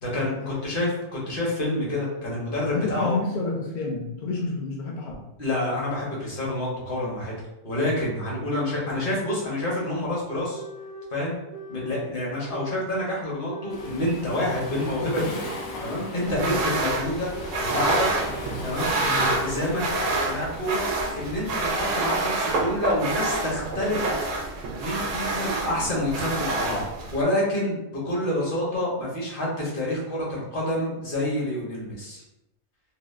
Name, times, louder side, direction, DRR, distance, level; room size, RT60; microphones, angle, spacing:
voice 1, 0.0-3.2 5.4-7.4 7.6-10.6 11.1-11.4 11.7-15.4 15.8-17.3 17.6-18.1 18.6-19.8 20.2-20.8 21.2-24.1 24.8-26.8 27.1-32.2, left 1 dB, 45° left, -5 dB, 1.1 m, -28 dB
voice 2, 2.7-5.2 16.4-16.6 19.0-19.3, left 3 dB, 70° left, -2 dB, 0.4 m, -30 dB
sound 1, 8.3-8.4 9.3-9.4 10.3-11.1 11.5-12.1 12.5-13.1 13.5-14.0 14.4-15.0 15.4-16.0 16.4-16.9 17.3-17.9 18.3-18.9 19.3-19.9, right 1 dB, 25° right, 0.4 m, -41 dB
Waves surf, 13.7-21.8, left 2 dB, 90° left, 1.1 m, -38 dB
sound 2, 16.2-27.2, right 2 dB, 70° right, 0.9 m, -27 dB
3.2 x 2.4 x 2.4 m, 0.91 s
omnidirectional pair, 1.4 m